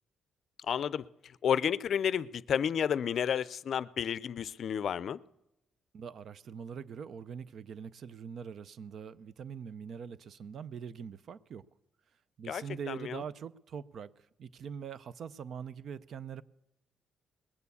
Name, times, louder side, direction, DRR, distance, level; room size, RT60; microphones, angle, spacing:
voice 1, 0.6-1.0 1.4-5.2 12.5-13.2, left 8 dB, 60° left, 0.4 m, -31 dB
voice 2, 5.9-11.6 12.4-16.4, right 7 dB, 60° right, 0.5 m, -43 dB
20.5 x 7.0 x 8.4 m
cardioid pair, 90°, 0 cm